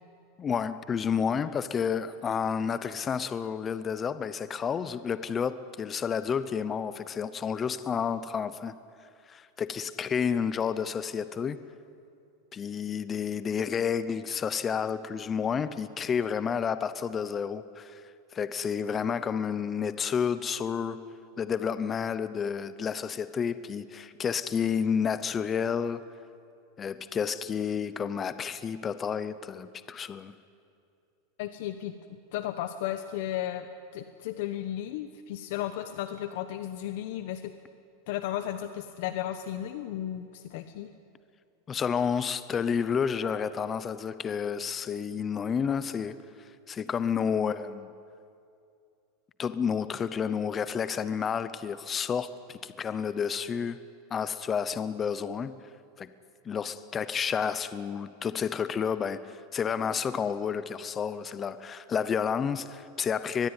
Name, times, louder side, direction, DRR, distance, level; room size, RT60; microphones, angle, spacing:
voice 1, 0.4-8.8 9.3-11.6 12.5-18.0 18.3-21.0 21.4-26.0 26.8-30.3 41.7-46.2 46.7-47.9 49.4-53.8 54.1-55.5 56.0-56.1 56.4-63.5, left 7 dB, 15° left, 0.7 m, -30 dB
voice 2, 31.4-31.9 32.3-33.7 33.9-37.5 38.1-40.9, left 12 dB, 55° left, 1.1 m, -34 dB
23.0 x 21.0 x 9.8 m
supercardioid pair, 175°, 0 cm